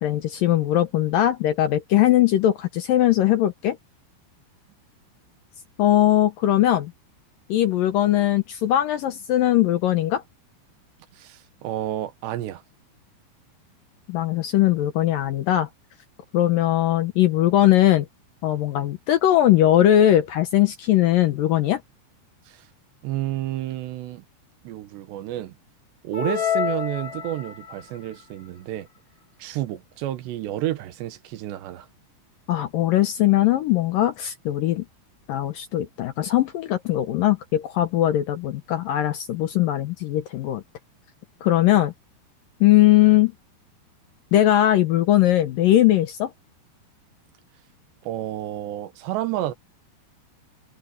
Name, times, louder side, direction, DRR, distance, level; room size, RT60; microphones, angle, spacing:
voice 1, 0.0-3.8 5.8-6.9 7.5-10.2 14.1-15.7 16.3-18.1 18.4-21.8 32.5-34.9 35.3-40.6 41.4-41.9 42.6-43.3 44.3-46.3, left 13 dB, 75° left, 2.2 m, -20 dB
voice 2, 11.2-12.6 22.5-22.6 23.0-24.2 24.6-25.5 26.0-28.9 29.4-31.9 48.0-49.5, right 13 dB, 80° right, 3.4 m, -30 dB
sound 1, 26.1-27.8, left 9 dB, 35° left, 5.6 m, -27 dB
omnidirectional pair, 5.0 m